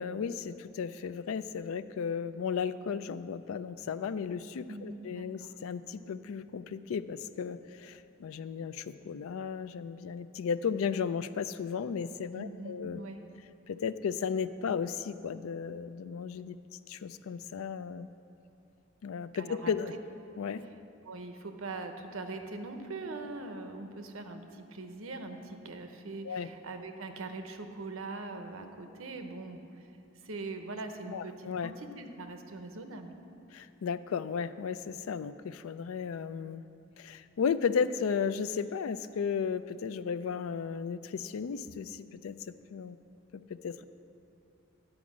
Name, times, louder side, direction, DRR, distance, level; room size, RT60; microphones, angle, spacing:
voice 1, 0.0-13.0 13.7-16.6 16.9-18.1 19.0-19.9 20.4-20.6 26.2-26.5 31.0-31.7 33.5-36.6 37.0-43.0 43.5-43.8, left 6 dB, 80° left, 13 dB, 0.4 m, -34 dB
voice 2, 4.7-5.3 12.3-13.2 19.3-19.7 20.6-20.7 21.1-29.6 30.2-33.1, right 3 dB, 75° right, 6 dB, 0.8 m, -42 dB
10.0 x 5.0 x 7.3 m, 2.7 s
head